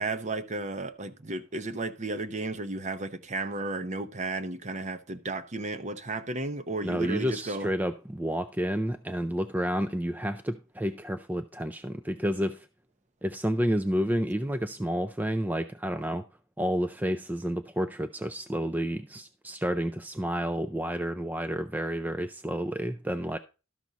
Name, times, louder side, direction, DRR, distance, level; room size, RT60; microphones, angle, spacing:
voice 1, 0.0-7.7, right 2 dB, 35° right, 0.8 m, -33 dB
voice 2, 6.8-12.7 13.2-16.2 16.6-23.4, equal, 10° right, 0.4 m, -30 dB
12.5 x 6.1 x 4.0 m
head